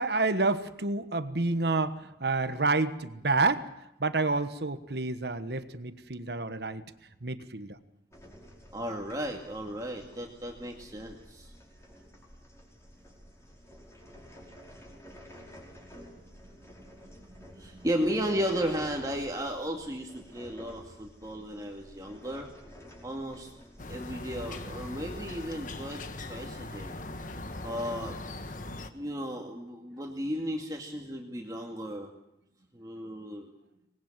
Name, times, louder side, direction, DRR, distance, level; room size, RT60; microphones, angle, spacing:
voice 1, 0.0-3.7 4.0-6.8 7.2-7.8, right 3 dB, 65° right, 11 dB, 1.3 m, -29 dB
sound 1, 8.1-26.1, equal, 15° left, 5.1 m, -51 dB
voice 2, 8.7-11.5 17.5-22.5 23.0-23.5 23.9-27.0 27.6-28.2 28.9-32.1 32.7-33.5, equal, 20° right, 1 dB, 2.3 m, -34 dB
sound 2, 23.8-28.9, left 2 dB, 45° left, 1.4 m, -40 dB
25.0 x 20.0 x 7.5 m, 0.83 s
head